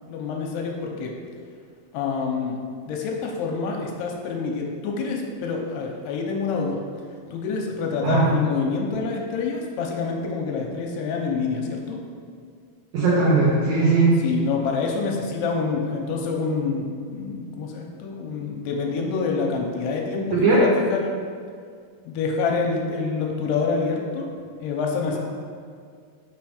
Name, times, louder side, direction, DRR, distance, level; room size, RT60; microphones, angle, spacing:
voice 1, 0.1-1.1 1.9-2.6 2.9-6.8 7.3-12.0 14.2-21.1 22.1-24.3 24.6-25.2, left 4 dB, 90° left, 1 dB, 2.7 m, -27 dB
voice 2, 12.9-14.1 20.3-20.6, right 3 dB, 85° right, -7 dB, 1.6 m, -18 dB
6.0 x 3.5 x 5.0 m, 2.1 s
omnidirectional pair, 4.7 m